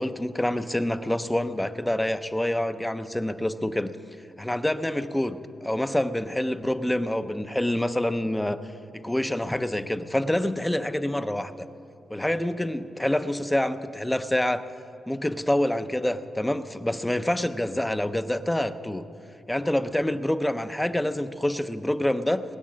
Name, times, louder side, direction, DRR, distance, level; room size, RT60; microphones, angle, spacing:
voice 1, 0.0-3.9 4.4-8.6 8.9-11.5 12.1-14.6 15.1-19.0 19.5-22.4, left 1 dB, 10° left, 11 dB, 0.6 m, -27 dB
20.0 x 9.6 x 7.4 m, 2.5 s
wide cardioid pair, 125°, 0 cm